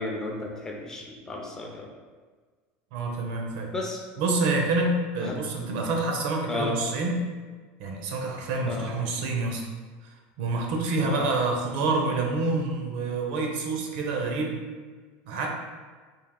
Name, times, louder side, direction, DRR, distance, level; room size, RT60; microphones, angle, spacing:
voice 1, 0.0-1.9 3.7-4.0 5.2-5.4 6.5-6.8 8.7-8.9 11.0-11.2, left 2 dB, 10° left, 0 dB, 0.4 m, -33 dB
voice 2, 2.9-3.7 4.2-7.2 7.8-9.7 10.4-14.6 15.3-15.5, right 3 dB, 70° right, 1 dB, 0.6 m, -27 dB
3.4 x 2.5 x 3.7 m, 1.5 s
cardioid pair, 170°, 5 cm